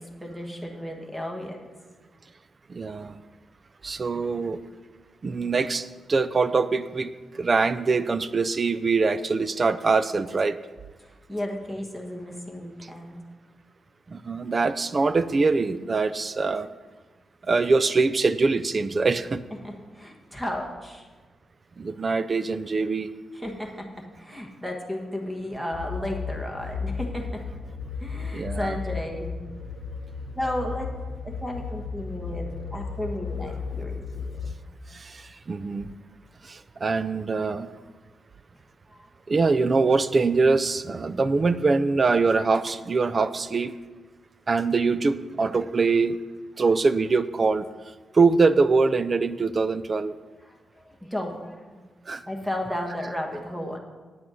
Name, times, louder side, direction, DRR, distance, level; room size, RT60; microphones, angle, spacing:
voice 1, 0.0-1.6 11.0-13.2 19.6-21.1 23.3-27.4 28.0-29.4 30.4-30.9 31.4-34.5 38.9-39.1 50.4-51.8 52.3-53.8, left 1 dB, 5° right, 2 dB, 1.3 m, -34 dB
voice 2, 2.7-3.2 3.8-4.6 5.2-10.6 14.1-16.7 17.5-19.4 21.8-23.1 28.3-28.8 34.9-35.9 36.4-37.7 39.3-43.7 44.5-46.2 46.6-47.6 48.1-50.1 52.1-52.2, right 4 dB, 30° right, 13 dB, 0.4 m, -23 dB
sound 1, 25.7-34.5, left 5 dB, 85° left, 0.6 m, -34 dB
9.2 x 8.4 x 6.2 m, 1.4 s
wide cardioid pair, 165°, 0 cm